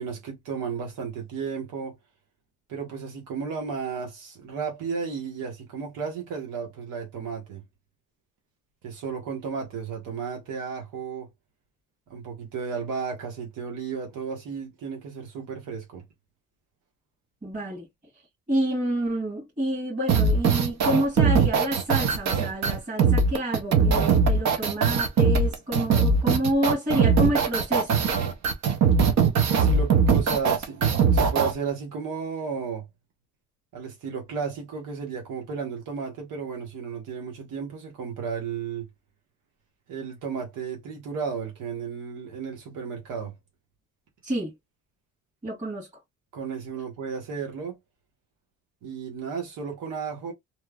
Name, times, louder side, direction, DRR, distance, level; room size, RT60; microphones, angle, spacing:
voice 1, 0.0-2.0 2.7-7.6 8.8-11.3 12.1-16.0 29.5-32.9 33.7-38.9 39.9-43.3 46.3-47.8 48.8-50.3, right 6 dB, 90° right, 1.0 m, -33 dB
voice 2, 17.4-17.9 18.5-28.0 44.2-44.5 45.4-45.9, equal, 25° right, 1.6 m, -28 dB
sound 1, 20.1-31.5, right 5 dB, 65° right, 0.8 m, -21 dB
2.9 x 2.2 x 2.3 m
cardioid pair, 90°, 30 cm